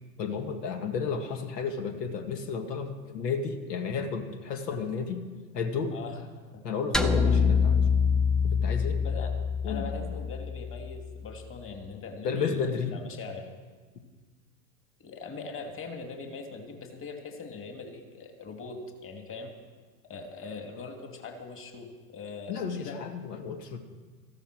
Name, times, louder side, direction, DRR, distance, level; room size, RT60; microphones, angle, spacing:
voice 1, 0.2-5.2 5.5-6.0 6.6-7.9 8.4-9.0 9.6-10.1 12.2-13.0 22.5-23.8, left 5 dB, 70° left, 5 dB, 1.9 m, -32 dB
voice 2, 5.9-6.2 6.5-6.6 9.0-9.3 9.6-12.6 12.9-13.5 15.0-19.5 20.1-23.0, left 4 dB, 25° left, 4 dB, 2.5 m, -41 dB
sound 1, 6.9-11.3, left 5 dB, ahead, 0.4 m, -26 dB
14.5 x 12.5 x 6.2 m, 1.4 s
hypercardioid pair, 95°, 49 cm